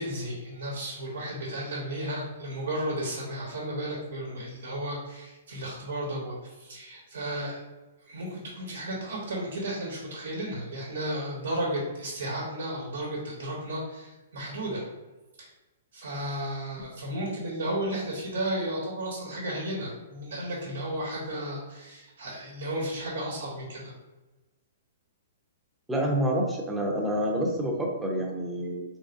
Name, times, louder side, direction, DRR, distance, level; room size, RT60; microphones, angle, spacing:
voice 1, 0.0-7.6 8.1-14.9 15.4-15.5 15.9-23.9, right 1 dB, 90° right, -3 dB, 1.2 m, -33 dB
voice 2, 25.9-28.8, equal, 5° right, -1 dB, 0.7 m, -28 dB
3.8 x 3.2 x 2.6 m, 1.1 s
hypercardioid pair, 150°, 0 cm